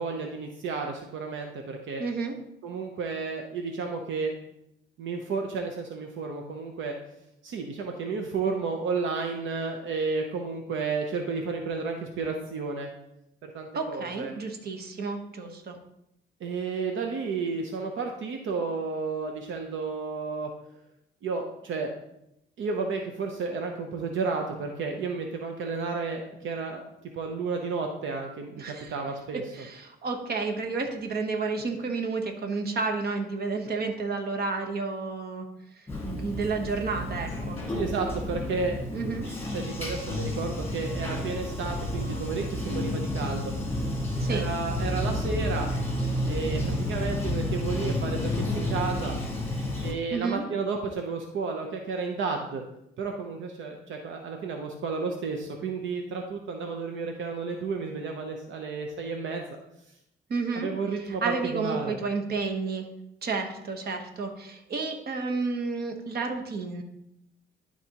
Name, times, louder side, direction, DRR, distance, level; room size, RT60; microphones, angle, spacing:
voice 1, 0.0-2.0 2.6-4.3 5.0-6.9 7.4-12.9 13.4-14.3 16.4-20.5 21.2-21.9 22.6-26.8 27.1-28.6 28.9-29.4 37.7-38.8 39.5-44.0 44.3-45.7 46.3-49.2 49.8-52.6 53.0-59.5 60.5-62.0, right 4 dB, 75° right, 3 dB, 0.8 m, -32 dB
voice 2, 2.0-2.3 13.7-15.8 28.6-28.9 29.5-35.5 35.7-37.6 38.9-39.3 44.2-44.4 50.1-50.4 60.3-60.7 61.0-62.9 63.2-66.8, right 4 dB, 55° right, 4 dB, 1.1 m, -31 dB
Bathtub (filling or washing), 35.9-49.9, left 1 dB, 10° left, 1.8 m, -30 dB
11.5 x 4.2 x 3.0 m, 0.82 s
cardioid pair, 90°, 20 cm